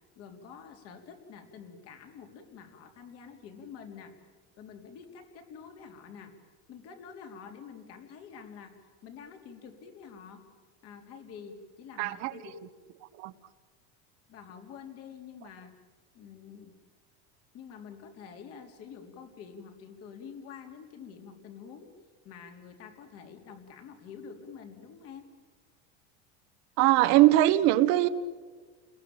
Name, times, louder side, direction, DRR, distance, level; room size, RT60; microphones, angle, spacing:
voice 1, 0.2-4.1 4.6-6.3 6.7-8.7 9.0-10.4 10.8-12.5 14.3-15.7 16.1-16.7 17.5-21.9 22.2-25.2, left 6 dB, 45° left, 5 dB, 3.8 m, -47 dB
voice 2, 12.0-12.3 13.2-13.3 26.8-28.1, right 15 dB, 55° right, 9 dB, 1.4 m, -21 dB
29.5 x 21.5 x 8.9 m, 1.5 s
supercardioid pair, 150°, 33 cm